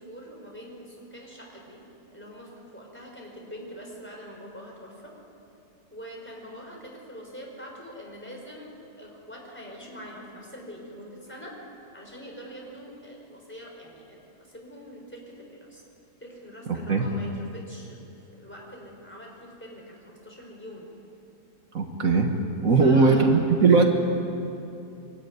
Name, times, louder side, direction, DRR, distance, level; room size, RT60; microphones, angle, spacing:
voice 1, 0.0-1.8 2.1-5.1 5.9-11.5 11.9-15.8 16.2-18.0 18.3-20.9 22.8-23.9, equal, 5° left, -2 dB, 4.7 m, -43 dB
voice 2, 16.7-17.0 21.7-22.3 22.6-23.9, right 4 dB, 55° right, 3 dB, 1.8 m, -19 dB
23.0 x 13.5 x 9.5 m, 2.8 s
omnidirectional pair, 1.8 m